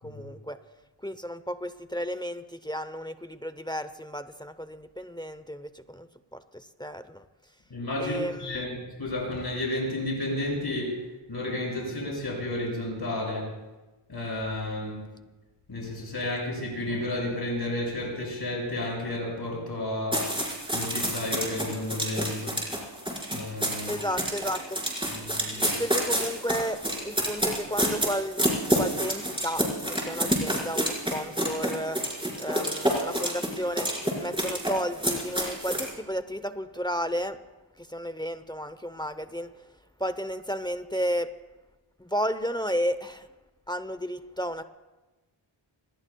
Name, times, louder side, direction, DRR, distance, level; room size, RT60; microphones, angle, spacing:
voice 1, 0.0-0.6 1.0-7.3 8.0-8.7 23.7-28.5 28.7-37.4 37.8-39.5 40.0-41.3 42.0-43.3 43.7-44.6, equal, 10° left, 11 dB, 0.8 m, -33 dB
voice 2, 7.7-13.5 14.1-15.1 15.7-20.3 20.7-22.6 23.3-23.9 25.1-25.8, left 1 dB, 50° left, -2 dB, 6.7 m, -32 dB
sound 1, 20.1-35.9, equal, 10° right, 5.1 m, -28 dB
27.0 x 19.5 x 2.3 m, 1.1 s
cardioid pair, 55°, 49 cm